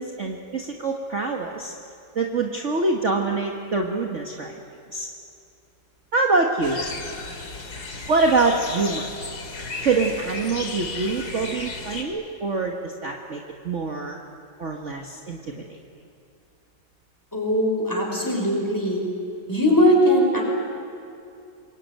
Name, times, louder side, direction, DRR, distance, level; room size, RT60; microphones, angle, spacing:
voice 1, 0.0-1.7 2.1-4.5 4.9-5.1 6.1-6.8 8.1-9.1 9.8-14.2 14.6-15.8, right 3 dB, 40° right, 1 dB, 1.7 m, -25 dB
sound 1, 6.6-12.0, left 3 dB, 55° left, 2.7 m, -34 dB
voice 2, 17.3-19.0 19.5-20.4, equal, 10° left, -1 dB, 5.5 m, -20 dB
26.5 x 22.0 x 9.2 m, 2.6 s
omnidirectional pair, 2.0 m